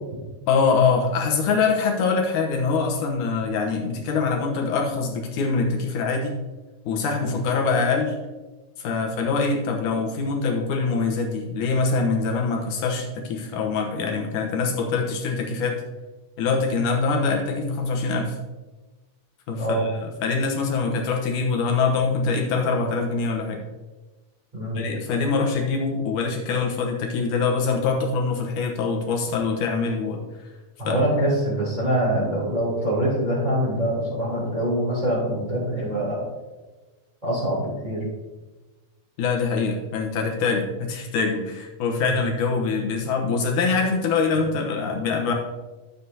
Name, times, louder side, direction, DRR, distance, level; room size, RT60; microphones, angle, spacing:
voice 1, 0.5-6.4 6.9-8.2 8.8-15.8 16.4-18.4 19.5-23.6 24.7-30.2 30.8-31.0 39.2-45.3, left 4 dB, 75° left, 1 dB, 2.4 m, -24 dB
voice 2, 30.8-36.2 37.2-38.0 42.0-42.2, right 1 dB, 10° right, -9 dB, 2.9 m, -24 dB
12.0 x 7.8 x 2.8 m, 1.2 s
omnidirectional pair, 3.8 m